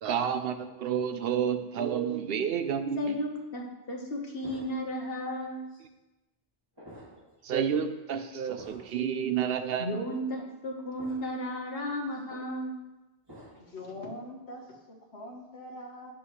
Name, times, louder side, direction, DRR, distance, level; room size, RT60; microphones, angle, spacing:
voice 1, 0.0-3.2 7.4-9.9, right 8 dB, 65° right, 9 dB, 0.8 m, -30 dB
voice 2, 3.0-5.6 9.8-12.8, equal, 60° left, 0 dB, 1.4 m, -34 dB
sound 1, 4.4-5.1 5.7-5.8 6.8-7.3 7.7-7.9 8.6-9.0 9.7-9.8 11.0-11.5 11.8-12.5 13.3-13.8, equal, 20° right, 1.9 m, -50 dB
voice 3, 13.5-16.1, left 1 dB, 85° left, -1 dB, 1.6 m, -43 dB
9.5 x 6.2 x 3.1 m, 1.0 s
omnidirectional pair, 1.1 m